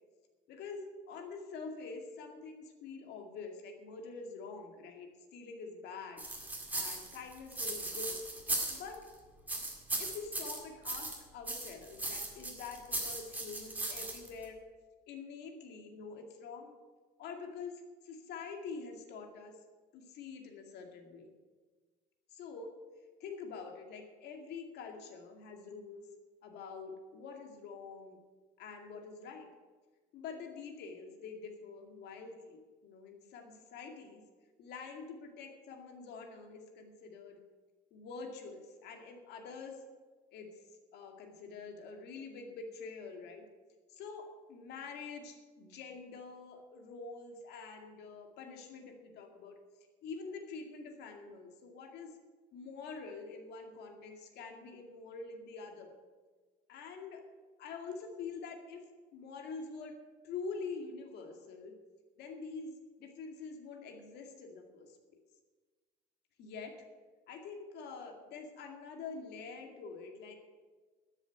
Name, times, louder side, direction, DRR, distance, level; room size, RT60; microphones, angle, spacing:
voice 1, 0.5-6.3 6.7-8.2 8.5-9.1 10.0-14.6 15.1-16.7 17.2-19.6 19.9-21.3 22.3-22.7 23.2-26.1 26.4-28.2 28.6-29.5 30.1-34.2 34.6-37.4 37.9-39.8 40.3-40.6 40.9-43.4 43.9-49.6 50.0-52.2 52.5-55.9 56.7-57.2 57.6-58.8 59.1-60.0 60.2-61.8 62.2-65.0 66.4-66.8 67.3-70.3, left 4 dB, 65° left, 4 dB, 2.2 m, -46 dB
sound 1, 6.2-9.1 9.5-11.2 11.5-14.4, right 2 dB, 10° right, 2.0 m, -38 dB
13.0 x 7.3 x 9.1 m, 1.4 s
cardioid pair, 175°, 18 cm